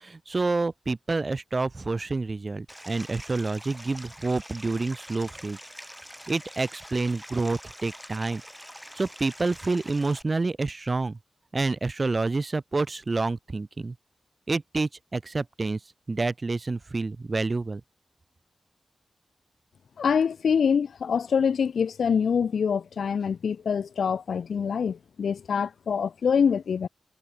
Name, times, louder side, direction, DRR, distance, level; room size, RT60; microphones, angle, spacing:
voice 1, 0.0-5.6 6.3-8.4 9.0-11.2 11.5-13.9 14.5-15.8 16.1-17.8, right 3 dB, 45° right, 0.7 m, -28 dB
Stream, 2.7-10.2, equal, ahead, 5.2 m, -45 dB
voice 2, 20.0-26.9, left 6 dB, 85° left, 1.7 m, -25 dB
cardioid pair, 50°, 0 cm